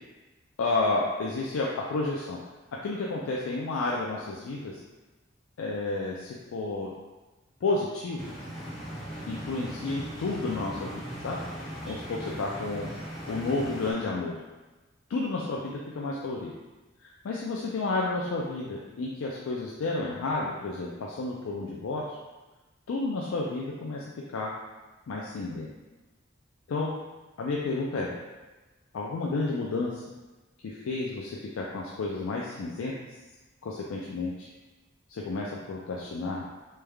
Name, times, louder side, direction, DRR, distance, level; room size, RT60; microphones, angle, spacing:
voice 1, 0.6-2.4 2.8-4.8 5.6-6.9 7.6-8.3 9.3-11.4 11.9-12.9 13.3-14.4 15.1-16.5 17.0-22.2 22.9-24.0 24.3-24.5 25.1-25.7 26.7-26.9 27.4-28.1 28.9-30.0 30.6-32.9 33.6-34.5 35.1-36.4, left 3 dB, 90° left, -3 dB, 0.4 m, -31 dB
sound 1, 8.2-13.9, equal, ahead, 0.9 m, -39 dB
3.2 x 2.3 x 3.2 m, 1.2 s
head